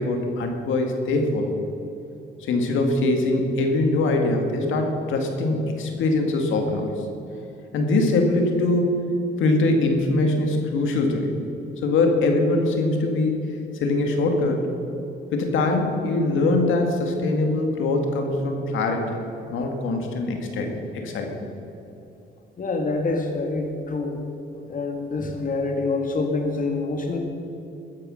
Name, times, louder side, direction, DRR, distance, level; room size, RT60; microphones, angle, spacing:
voice 1, 0.0-1.5 2.5-6.9 7.7-9.0 9.4-11.3 11.8-13.4 13.8-14.6 15.3-19.1 19.5-21.5, left 2 dB, 80° left, 3 dB, 2.0 m, -22 dB
voice 2, 22.6-24.2 24.7-27.2, left 3 dB, 45° left, 3 dB, 1.6 m, -26 dB
14.0 x 9.7 x 6.4 m, 2.9 s
cardioid pair, 90°, 20 cm